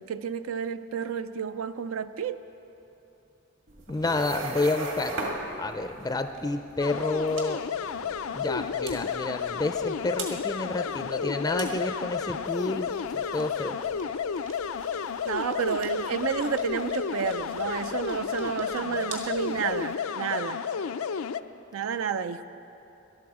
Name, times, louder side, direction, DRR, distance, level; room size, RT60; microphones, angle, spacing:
voice 1, 0.0-2.4 15.3-20.6 21.7-22.5, right 7 dB, 85° right, 11 dB, 0.4 m, -31 dB
sound 1, 3.7-19.9, right 2 dB, 70° right, 2.1 m, -42 dB
voice 2, 3.9-5.2 5.6-7.6 8.3-13.8, left 2 dB, 20° left, 7 dB, 0.4 m, -30 dB
Police Siren (Synth cartoonish), 6.8-21.4, left 6 dB, 85° left, 0.4 m, -32 dB
19.0 x 12.0 x 4.8 m, 3.0 s
head